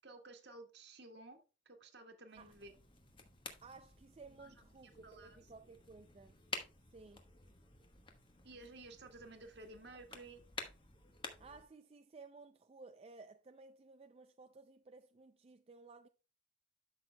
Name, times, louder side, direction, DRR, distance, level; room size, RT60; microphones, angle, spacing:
voice 1, 0.0-1.4 1.6-2.7 4.4-4.5 5.0-5.4 8.4-10.4, right 2 dB, 60° right, 1.6 m, -54 dB
sound 1, 2.3-11.6, left 3 dB, 25° left, 1.2 m, -51 dB
voice 2, 3.6-6.4 6.9-7.2 11.4-16.1, right 4 dB, 30° right, 0.4 m, -57 dB
12.5 x 6.3 x 2.2 m
head